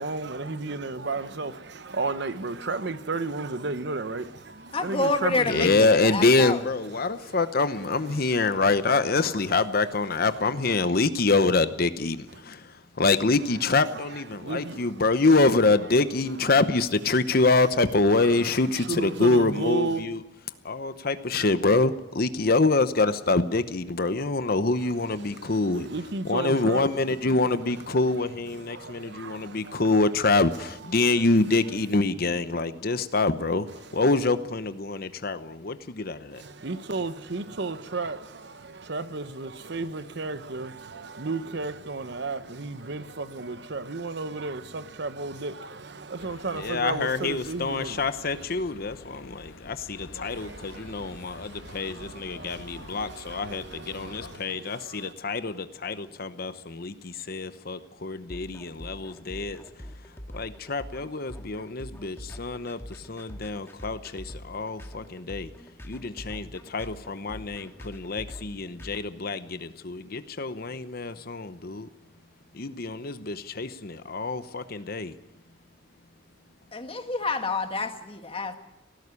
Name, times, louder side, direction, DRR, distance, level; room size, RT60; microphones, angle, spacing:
voice 1, 0.0-6.0 6.5-6.6 6.9-10.9 12.3-12.4 13.4-16.9 17.2-20.1 24.8-31.9 33.7-34.3 36.3-48.5 50.2-55.1, right 3 dB, 60° right, 0.9 m, -35 dB
voice 2, 4.7-6.6 76.7-78.5, left 3 dB, 30° left, 1.7 m, -28 dB
voice 3, 5.5-20.2 20.6-25.9 26.3-33.7 33.9-36.4 46.6-59.6 60.3-65.5 65.9-71.9 72.5-75.1, left 3 dB, 50° left, 0.9 m, -25 dB
sound 1, 46.2-54.4, left 2 dB, 90° left, 1.8 m, -47 dB
sound 2, 58.3-69.0, equal, 15° left, 1.7 m, -43 dB
18.0 x 16.0 x 9.7 m
head